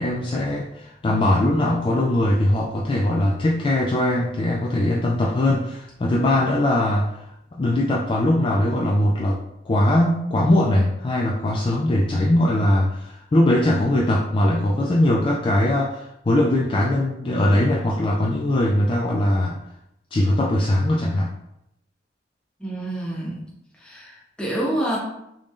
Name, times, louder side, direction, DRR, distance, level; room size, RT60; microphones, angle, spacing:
voice 1, 0.0-7.1 7.5-9.4 9.7-19.6 20.1-21.3, left 1 dB, 30° left, -3 dB, 0.3 m, -21 dB
voice 2, 22.6-23.4 23.8-25.0, right 1 dB, 5° left, -5 dB, 0.9 m, -27 dB
3.5 x 2.6 x 3.1 m, 0.81 s
head